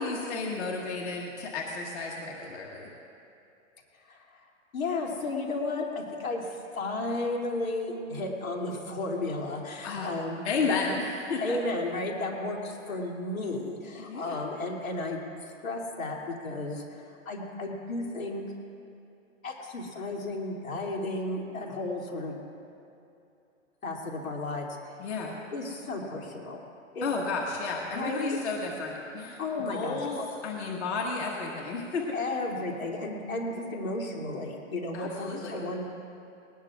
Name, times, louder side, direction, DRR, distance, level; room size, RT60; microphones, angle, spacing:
voice 1, 0.0-2.9 9.8-10.1 10.4-11.6 14.0-14.5 25.0-25.4 27.0-32.1 34.9-35.6, left 4 dB, 55° left, -2 dB, 1.8 m, -32 dB
voice 2, 4.7-10.4 10.7-11.0 11.4-18.4 19.4-22.4 23.8-24.7 25.5-26.6 26.9-27.1 27.9-28.4 29.4-30.3 32.1-35.8, left 2 dB, 85° left, 0 dB, 2.8 m, -33 dB
20.0 x 19.0 x 2.4 m, 2.7 s
hypercardioid pair, 170°, 40 cm